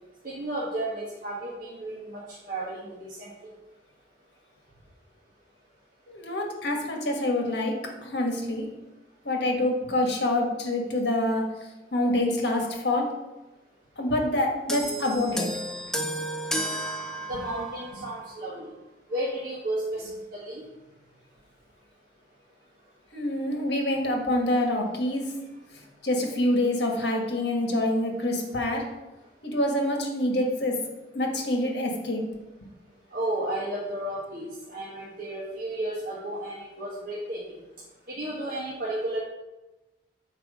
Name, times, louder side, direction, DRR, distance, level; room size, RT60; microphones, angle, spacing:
voice 1, 0.2-2.2 2.5-3.5 17.3-18.7 19.1-20.6 33.1-37.4 38.1-39.2, right 1 dB, 55° right, -6 dB, 1.4 m, -33 dB
voice 2, 6.1-8.7 9.2-11.5 11.9-13.2 14.0-15.5 23.1-25.3 26.0-28.8 29.4-30.8 31.1-32.2, left 1 dB, 70° left, 1 dB, 1.5 m, -26 dB
sound 1, 14.7-18.3 19.2-19.3, equal, 5° left, 0.6 m, -33 dB
7.5 x 4.6 x 4.9 m, 1.1 s
head